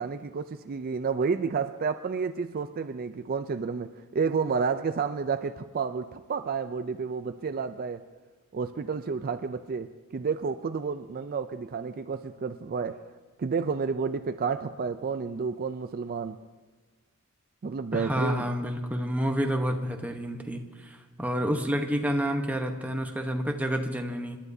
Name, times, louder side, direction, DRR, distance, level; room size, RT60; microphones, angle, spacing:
voice 1, 0.0-8.0 8.5-13.0 13.4-16.4 17.6-18.5, right 5 dB, 40° right, 9 dB, 0.4 m, -30 dB
voice 2, 17.9-24.4, equal, 5° right, 3 dB, 1.0 m, -29 dB
28.5 x 12.0 x 2.7 m, 1.3 s
head